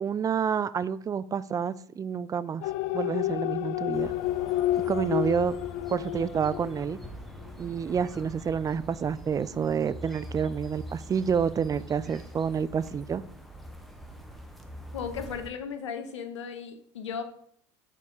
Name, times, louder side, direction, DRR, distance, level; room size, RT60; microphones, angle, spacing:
voice 1, 0.0-4.1 4.9-5.6 5.9-7.0 7.6-13.2, right 7 dB, 25° right, 16 dB, 0.4 m, -29 dB
sound 1, 2.6-7.1 7.5-7.6, left 14 dB, 65° left, 0.4 m, -30 dB
sound 2, 3.9-15.5, equal, ahead, 1.0 m, -44 dB
voice 2, 14.9-17.2, left 6 dB, 90° left, 9 dB, 0.8 m, -36 dB
5.6 x 4.6 x 5.4 m, 0.63 s
hypercardioid pair, 80°, 15 cm